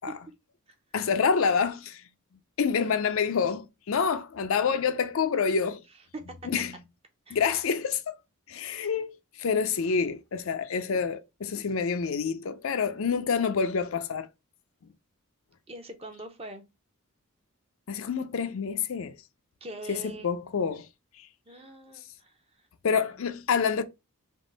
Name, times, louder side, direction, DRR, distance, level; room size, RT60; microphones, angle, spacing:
voice 1, 0.9-2.0 2.6-5.8 6.4-6.8 7.3-8.2 8.5-14.3 17.9-19.2 19.9-20.0 20.2-20.9 22.8-23.8, left 6 dB, 65° left, 0.5 m, -27 dB
voice 2, 15.7-16.7 19.6-20.3 21.5-22.7, right 2 dB, 25° right, 0.7 m, -43 dB
3.6 x 2.9 x 3.9 m
head